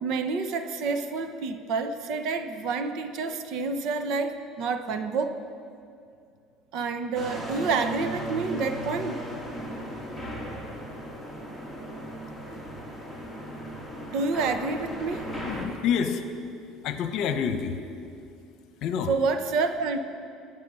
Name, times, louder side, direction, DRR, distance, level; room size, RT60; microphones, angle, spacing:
voice 1, 0.0-5.4 6.7-9.2 14.1-15.3 19.1-20.0, right 4 dB, 60° right, 8 dB, 1.0 m, -28 dB
sound 1, 7.1-15.7, equal, 10° right, 2.5 m, -36 dB
voice 2, 15.4-16.2 16.8-17.8 18.8-19.1, left 7 dB, 55° left, 8 dB, 1.0 m, -27 dB
23.0 x 8.1 x 5.6 m, 2.4 s
cardioid pair, 145°, 0 cm